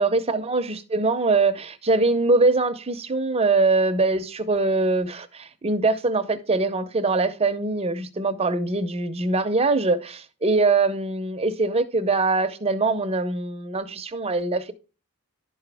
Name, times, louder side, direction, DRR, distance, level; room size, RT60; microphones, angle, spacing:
voice 1, 0.0-14.7, right 3 dB, 25° right, 0.6 m, -23 dB
11.0 x 4.9 x 3.4 m
head